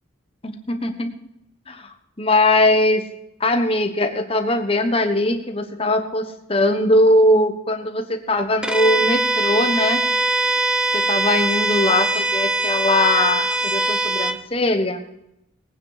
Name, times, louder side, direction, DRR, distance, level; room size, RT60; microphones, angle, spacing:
voice 1, 0.4-1.1 1.7-3.0 3.4-10.0 10.9-15.1, left 1 dB, 30° left, 6 dB, 1.3 m, -20 dB
Bowed string instrument, 8.6-14.4, right 2 dB, 5° right, 0.5 m, -21 dB
19.5 x 9.3 x 5.0 m, 0.84 s
head